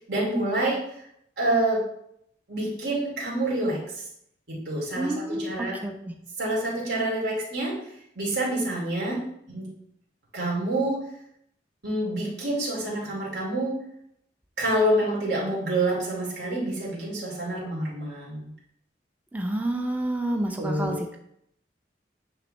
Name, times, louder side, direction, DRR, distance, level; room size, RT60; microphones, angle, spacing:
voice 1, 0.1-0.8 1.4-1.8 2.5-4.0 4.5-5.8 6.4-7.8 8.2-9.2 9.5-9.7 10.3-11.0 11.8-13.8 14.6-18.5 20.6-21.0, right 1 dB, 70° right, -5 dB, 2.6 m, -27 dB
voice 2, 5.0-6.1 19.3-21.2, right 1 dB, 10° right, 3 dB, 0.6 m, -29 dB
8.9 x 3.5 x 3.3 m, 0.73 s
head